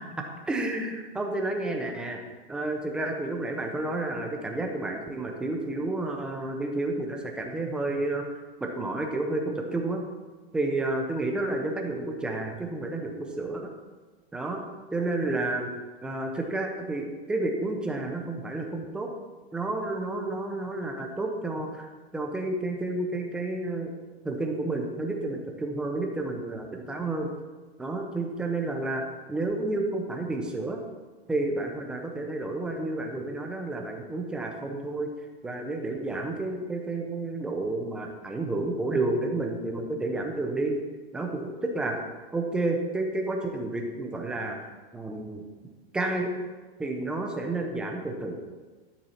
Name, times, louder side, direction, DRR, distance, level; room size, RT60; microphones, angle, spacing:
voice 1, 0.5-2.2 2.5-8.3 8.6-10.0 10.5-13.7 14.3-14.6 14.9-15.7 16.0-19.1 19.5-21.9 22.1-23.9 24.2-27.3 27.8-29.0 29.3-30.8 31.3-35.1 35.4-40.8 41.1-42.0 42.3-44.6 44.9-45.4 45.9-46.3 46.8-48.4, right 2 dB, 5° right, 2 dB, 0.5 m, -30 dB
12.0 x 6.9 x 5.6 m, 1.3 s
supercardioid pair, 165°, 32 cm